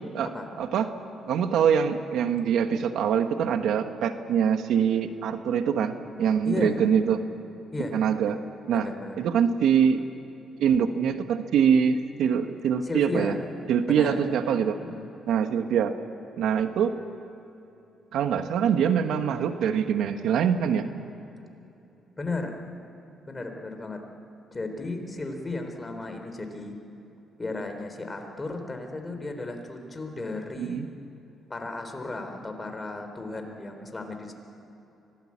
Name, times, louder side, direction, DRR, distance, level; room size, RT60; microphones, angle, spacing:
voice 1, 0.6-0.9 1.3-7.2 7.9-8.4 8.7-8.9 9.2-10.0 10.6-13.3 13.7-14.8 15.3-16.0 16.4-17.0 18.1-20.9 30.6-30.9, right 7 dB, 80° right, 8 dB, 1.3 m, -24 dB
voice 2, 6.4-6.7 7.7-8.0 8.7-9.2 12.8-13.4 13.9-14.2 14.8-15.0 22.2-22.6 23.3-24.0 24.5-26.8 27.4-30.8 31.5-34.3, left 2 dB, 25° left, 5 dB, 3.5 m, -34 dB
25.0 x 18.0 x 8.6 m, 2.9 s
cardioid pair, 90°, 0 cm